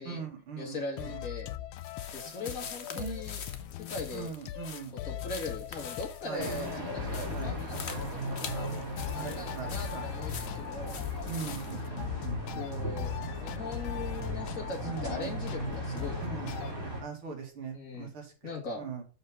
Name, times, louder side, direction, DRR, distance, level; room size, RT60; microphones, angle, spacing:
voice 1, 0.1-1.2 2.4-2.5 2.9-3.2 4.1-5.0 6.2-6.5 7.3-7.6 9.1-10.1 11.3-12.9 13.3-13.4 14.8-15.4 16.2-16.6 17.0-19.0, right 6 dB, 80° right, 1 dB, 2.8 m, -41 dB
voice 2, 0.6-1.5 2.1-3.4 3.7-4.3 5.0-8.7 9.1-11.0 12.6-16.2 17.7-18.1 18.4-18.8, left 3 dB, 40° left, 1 dB, 2.1 m, -40 dB
sound 1, 1.0-16.7, left 13 dB, 80° left, 1.4 m, -40 dB
sound 2, 1.8-11.9, left 6 dB, 65° left, 0.6 m, -45 dB
sound 3, 6.4-17.0, right 1 dB, 30° right, 3.5 m, -38 dB
6.5 x 5.0 x 4.8 m, 0.35 s
omnidirectional pair, 2.3 m